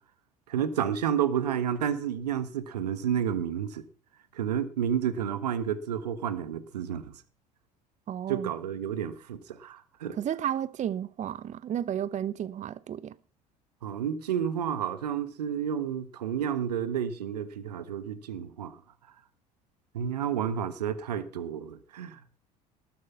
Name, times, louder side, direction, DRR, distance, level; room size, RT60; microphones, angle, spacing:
voice 1, 0.5-3.8 4.3-7.1 8.3-10.2 13.8-18.8 19.9-22.2, right 8 dB, 80° right, 1.4 m, -30 dB
voice 2, 8.1-8.5 10.1-13.1, right 10 dB, 35° right, 0.7 m, -32 dB
19.5 x 7.9 x 5.7 m
hypercardioid pair, 65°, 20 cm